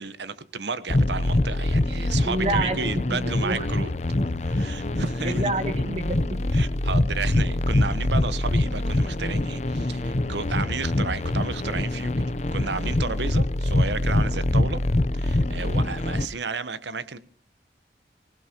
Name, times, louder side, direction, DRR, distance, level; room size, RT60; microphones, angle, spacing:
voice 1, 0.0-3.9 4.4-5.4 6.5-14.8 15.1-17.2, right 4 dB, 85° right, 1.1 m, -32 dB
sound 1, 0.9-16.2, left 1 dB, 40° left, 0.7 m, -24 dB
voice 2, 2.2-2.8 3.1-3.7 5.2-6.5, right 1 dB, 40° right, 2.1 m, -28 dB
25.0 x 17.0 x 3.0 m
head